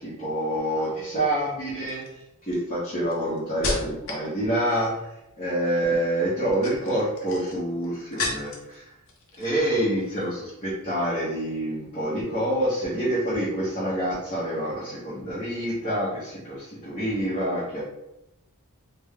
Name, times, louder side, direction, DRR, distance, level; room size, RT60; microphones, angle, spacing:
voice 1, 0.0-2.2 2.5-5.1 5.4-8.8 9.4-17.8, right 1 dB, 30° left, -12 dB, 1.1 m, -27 dB
sound 1, 0.8-1.2 1.9-4.3 4.6-5.1 6.3-8.7 9.1-9.7 10.0-10.2, left 2 dB, 60° left, 0.7 m, -34 dB
3.4 x 2.2 x 3.6 m, 0.89 s
head